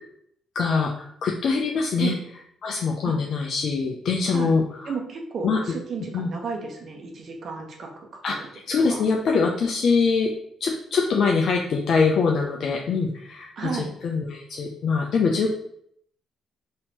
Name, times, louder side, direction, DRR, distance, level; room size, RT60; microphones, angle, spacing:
voice 1, 0.6-2.1 2.6-4.9 5.4-5.6 6.1-6.3 8.2-8.4 8.7-10.3 10.6-13.7 14.0-15.5, left 4 dB, 65° left, 1 dB, 0.4 m, -23 dB
voice 2, 4.9-8.4 8.8-9.0 13.6-13.9, right 5 dB, 60° right, 2 dB, 0.9 m, -33 dB
4.3 x 2.8 x 2.8 m, 0.70 s
hypercardioid pair, 50°, 0 cm